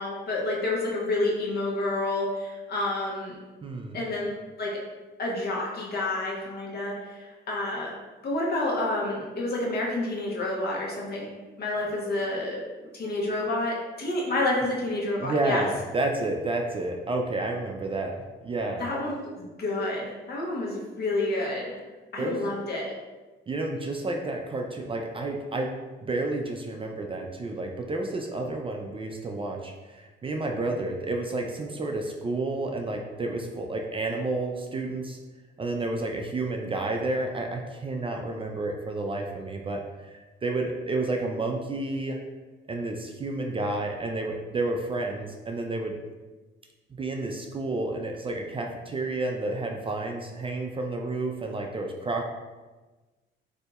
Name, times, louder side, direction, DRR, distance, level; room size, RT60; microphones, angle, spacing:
voice 1, 0.0-3.4 3.9-4.3 4.6-4.8 5.2-7.9 8.2-11.3 11.6-12.6 12.9-15.6 18.8-21.8 22.1-22.9, left 2 dB, 55° left, -3 dB, 1.0 m, -29 dB
voice 2, 3.6-4.0 15.2-18.1 18.4-18.9 22.2-22.5 23.5-25.7 26.1-35.2 35.6-42.2 42.7-45.9 47.0-52.2, right 2 dB, 25° right, 2 dB, 0.4 m, -30 dB
4.0 x 2.7 x 2.3 m, 1.2 s
cardioid pair, 90°, 20 cm